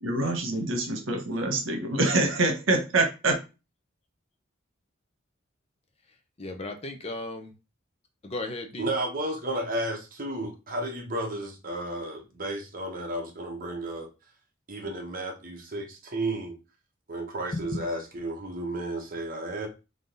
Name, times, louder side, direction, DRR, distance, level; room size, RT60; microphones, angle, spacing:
voice 1, 0.0-3.4, right 2 dB, 80° right, 4 dB, 1.2 m, -25 dB
voice 2, 6.4-7.5 8.2-8.9 17.5-17.8, left 2 dB, 30° left, 5 dB, 0.8 m, -35 dB
voice 3, 8.8-14.1 14.7-16.6 17.1-19.7, right 1 dB, 45° right, 2 dB, 1.2 m, -33 dB
3.8 x 3.6 x 3.9 m, 0.29 s
head